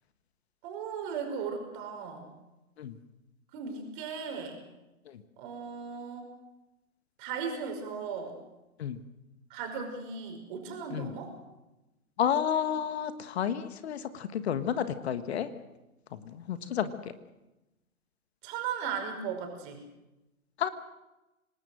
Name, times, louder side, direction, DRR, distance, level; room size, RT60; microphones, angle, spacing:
voice 1, 0.6-2.3 3.5-4.6 5.4-6.3 7.2-8.4 9.5-11.4 18.4-19.8, right 6 dB, 35° right, 4 dB, 5.4 m, -37 dB
voice 2, 12.2-15.5 16.3-17.1 20.6-20.7, left 9 dB, 50° left, 12 dB, 1.5 m, -31 dB
26.5 x 19.5 x 6.4 m, 0.98 s
figure-of-eight pair, 125°, 42 cm